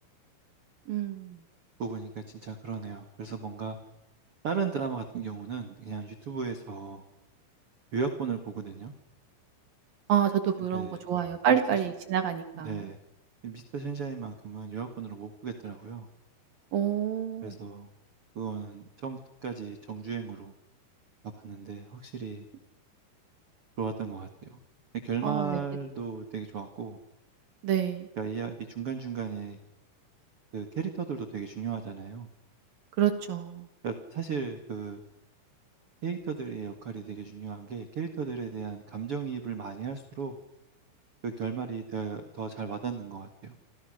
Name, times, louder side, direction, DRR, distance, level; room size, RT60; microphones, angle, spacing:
voice 1, 0.9-1.4 10.1-12.9 16.7-17.5 25.2-25.6 27.6-28.1 33.0-33.7, right 9 dB, 55° right, 9 dB, 2.8 m, -28 dB
voice 2, 1.8-3.8 4.4-7.0 7.9-8.9 10.7-11.1 11.5-11.8 12.6-13.0 13.4-16.1 17.4-17.9 18.3-20.5 21.4-22.4 23.8-24.6 25.0-27.0 28.2-29.6 30.5-32.3 33.8-35.0 36.0-40.4 41.2-43.5, right 5 dB, 80° right, 8 dB, 1.2 m, -35 dB
27.5 x 26.5 x 6.5 m, 0.87 s
omnidirectional pair, 5.9 m